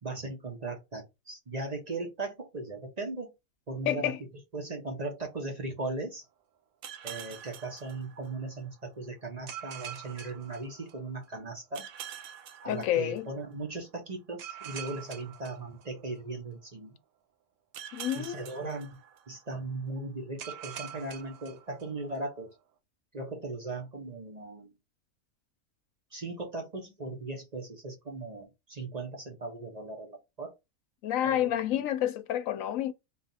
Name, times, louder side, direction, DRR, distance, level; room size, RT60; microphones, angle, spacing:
voice 1, 0.0-3.3 3.7-4.1 4.5-6.2 7.0-11.9 12.6-17.0 18.1-19.0 19.3-22.5 23.1-24.7 26.1-30.5 31.2-31.8, right 2 dB, 35° right, 0.9 m, -38 dB
voice 2, 3.9-4.2 12.7-13.3 17.9-18.5 31.0-32.9, left 11 dB, 80° left, 1.0 m, -29 dB
sound 1, 6.8-8.6 9.5-11.2 11.7-13.5 14.4-16.4 17.7-19.5 20.4-22.2, right 9 dB, 90° right, 1.1 m, -45 dB
4.1 x 2.4 x 4.0 m
omnidirectional pair, 1.4 m